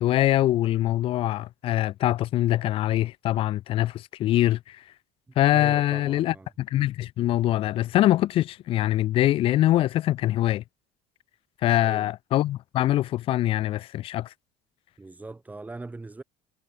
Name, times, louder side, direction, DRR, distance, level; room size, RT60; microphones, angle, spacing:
voice 1, 0.0-4.8 5.4-10.6 11.6-14.3, left 14 dB, 45° left, 0.3 m, -23 dB
voice 2, 5.5-6.5 11.8-12.1 15.0-16.2, right 3 dB, 10° right, 2.6 m, -40 dB
cardioid pair, 125°, 13 cm